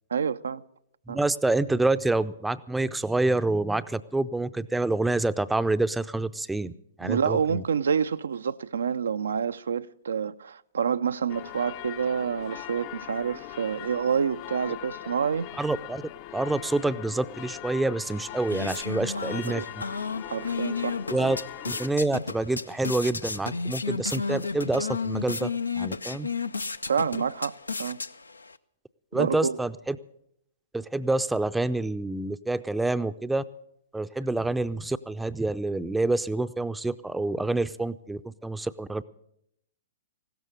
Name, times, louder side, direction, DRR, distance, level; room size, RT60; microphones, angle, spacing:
voice 1, 0.1-0.6 1.1-1.2 7.0-15.5 19.5-19.7 20.3-21.3 26.9-27.5 27.8-28.0 29.1-29.6, right 6 dB, 70° right, 0.5 m, -28 dB
voice 2, 1.1-7.6 15.6-16.0 16.3-19.8 21.1-21.4 21.7-25.5 25.8-26.3 29.1-30.0 30.7-33.4 33.9-39.0, right 2 dB, 5° right, 0.5 m, -27 dB
sound 1, 11.3-21.9, left 15 dB, 40° left, 0.6 m, -41 dB
sound 2, 18.0-28.6, left 4 dB, 85° left, 0.5 m, -33 dB
16.0 x 13.0 x 6.6 m
figure-of-eight pair, 115°, 0 cm